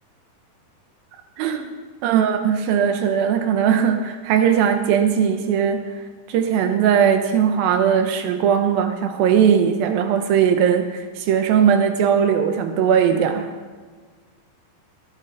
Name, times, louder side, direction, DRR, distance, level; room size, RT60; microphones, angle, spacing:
voice 1, 1.4-1.7 2.0-5.8 6.3-13.5, right 8 dB, 80° right, 6 dB, 2.7 m, -19 dB
19.5 x 9.4 x 4.0 m, 1.5 s
omnidirectional pair, 4.3 m